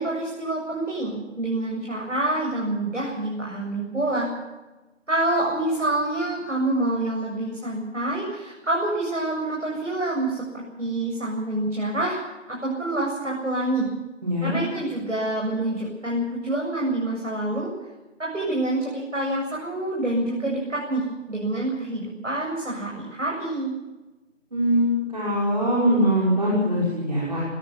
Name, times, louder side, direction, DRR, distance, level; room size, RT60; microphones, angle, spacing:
voice 1, 0.0-4.3 5.1-12.2 12.5-13.9 14.4-17.7 18.2-23.7, right 2 dB, 70° right, -2 dB, 7.8 m, -27 dB
voice 2, 14.2-14.6 24.5-27.4, equal, 35° right, -6 dB, 5.5 m, -22 dB
20.5 x 18.5 x 7.2 m, 1.1 s
figure-of-eight pair, 170°, 38 cm